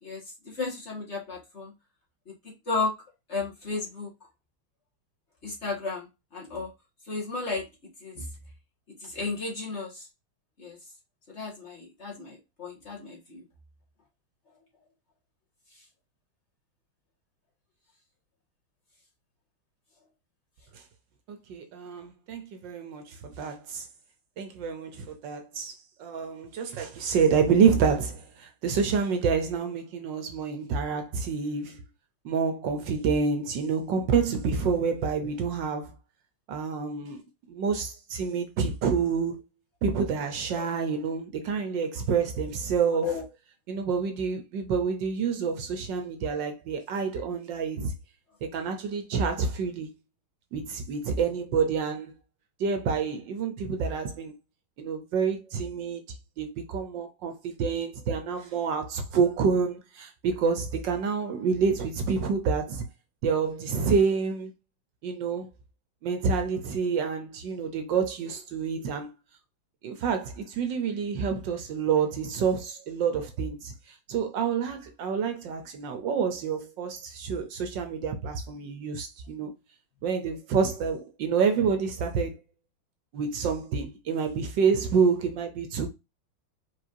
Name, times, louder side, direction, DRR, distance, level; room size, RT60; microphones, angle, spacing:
voice 1, 0.0-1.7 2.3-2.4 2.7-2.9 3.3-4.1 5.4-6.7 7.1-7.6 8.0-8.3 9.0-10.1 10.6-10.8 11.3-13.4 40.5-40.7 43.0-43.2 46.3-46.4, left 4 dB, 35° left, 1.9 m, -33 dB
voice 2, 21.3-23.8 24.4-25.7 26.0-31.8 32.2-35.9 36.5-39.4 39.8-43.1 43.7-47.9 48.4-49.9 50.5-52.1 52.6-54.3 54.8-56.0 56.4-62.8 63.2-64.5 65.0-65.5 66.0-69.1 69.8-79.5 80.0-82.4 83.1-85.9, right 5 dB, 70° right, 1.4 m, -28 dB
4.8 x 4.2 x 2.6 m
omnidirectional pair, 2.2 m